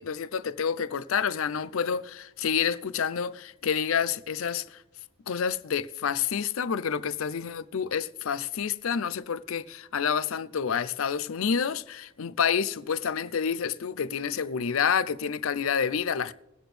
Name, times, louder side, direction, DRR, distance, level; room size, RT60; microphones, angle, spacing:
voice 1, 0.0-4.8 5.3-16.3, left 7 dB, 70° left, 0.5 m, -28 dB
22.0 x 8.0 x 3.3 m
head